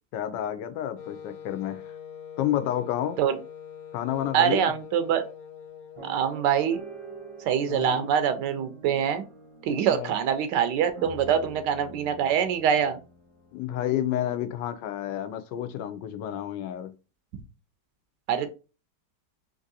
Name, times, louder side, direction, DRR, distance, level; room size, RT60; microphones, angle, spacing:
voice 1, 0.1-1.9 2.4-3.2 3.9-4.7 7.7-8.1 9.7-10.1 13.5-16.9, left 11 dB, 90° left, 1.2 m, -30 dB
Wind instrument woodwind instrument, 1.0-6.6, left 8 dB, 65° left, 1.0 m, -44 dB
voice 2, 4.3-5.3 6.0-6.8 7.5-9.2 9.6-13.0 18.3-18.5, right 8 dB, 80° right, 1.2 m, -24 dB
sound 1, 6.0-14.1 14.7-14.8 15.0-15.3, right 2 dB, 35° right, 0.5 m, -45 dB
3.6 x 2.6 x 2.6 m
omnidirectional pair, 1.9 m